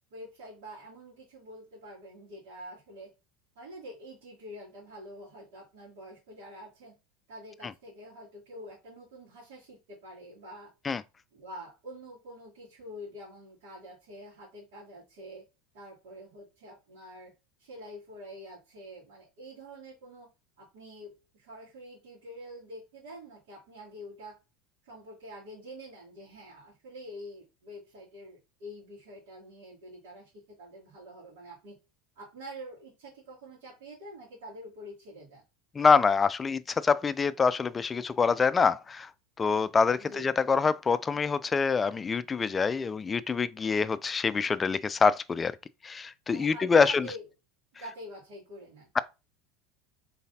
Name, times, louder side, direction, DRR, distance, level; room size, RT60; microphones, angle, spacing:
voice 1, 0.1-3.1 3.5-7.0 7.3-10.7 11.3-15.5 15.7-20.3 20.6-24.4 24.8-31.8 32.1-35.4 40.0-40.3 46.3-47.3 47.7-48.9, equal, 80° right, 2.7 m, -46 dB
voice 2, 35.8-39.1 39.4-45.5 45.8-47.1, left 5 dB, 20° left, 0.3 m, -25 dB
4.0 x 3.9 x 2.7 m
supercardioid pair, 105°, 0 cm